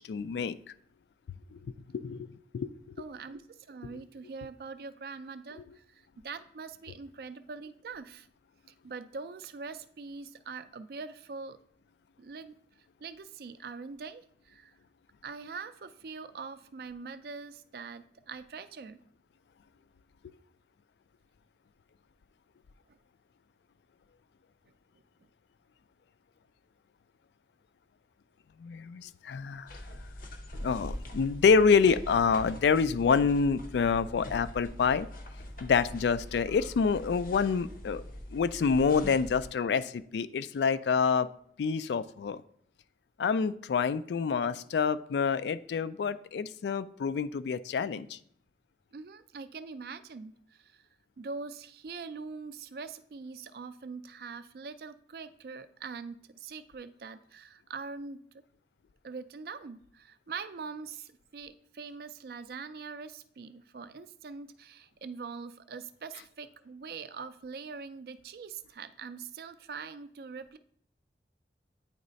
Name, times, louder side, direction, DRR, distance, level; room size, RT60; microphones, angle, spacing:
voice 1, 0.1-0.6 1.5-1.6 1.9-2.3 2.5-2.7 5.6-5.7 28.6-29.7 30.6-35.1 35.6-38.0 38.3-41.3 41.6-42.4 43.2-48.2, left 5 dB, 75° left, 15 dB, 0.3 m, -27 dB
voice 2, 3.0-8.3 8.8-11.6 12.2-12.6 13.0-14.7 15.2-19.0 22.9-23.0 48.9-50.8 51.2-58.2 59.0-70.6, right 4 dB, 55° right, 12 dB, 0.3 m, -43 dB
sound 1, 29.7-39.5, left 1 dB, 50° left, 0.7 m, -43 dB
8.9 x 3.2 x 4.0 m, 0.65 s
head